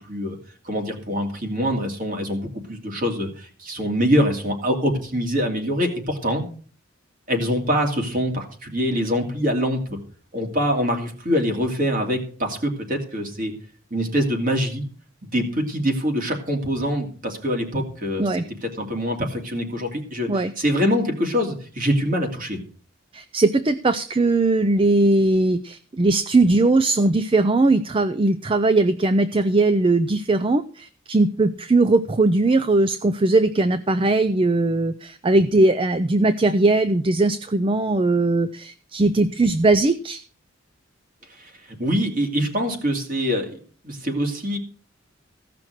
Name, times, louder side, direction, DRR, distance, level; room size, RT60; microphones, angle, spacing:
voice 1, 0.6-6.4 7.3-10.0 10.3-13.5 13.9-14.8 15.3-18.3 18.8-22.6 41.4-41.5 41.8-43.6 43.8-44.6, equal, 40° right, 3 dB, 2.6 m, -24 dB
voice 2, 23.1-40.2, right 2 dB, 25° right, 13 dB, 0.4 m, -19 dB
15.5 x 6.0 x 6.4 m, 0.43 s
head